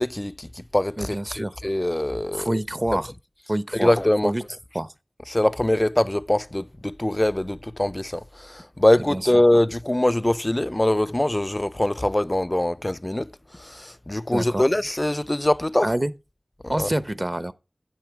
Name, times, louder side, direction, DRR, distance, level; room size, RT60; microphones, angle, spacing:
voice 1, 0.0-2.6 2.9-3.0 3.7-4.3 5.3-13.3 13.6-15.9 16.6-16.9, left 1 dB, 25° left, 0.4 m, -23 dB
voice 2, 1.0-1.5 2.3-3.1 3.5-3.9 4.2-4.4 4.7-4.9 9.0-9.4 14.3-14.7 15.8-16.1 16.7-17.5, right 1 dB, 30° right, 0.9 m, -27 dB
10.5 x 7.8 x 4.7 m
wide cardioid pair, 55°, 0 cm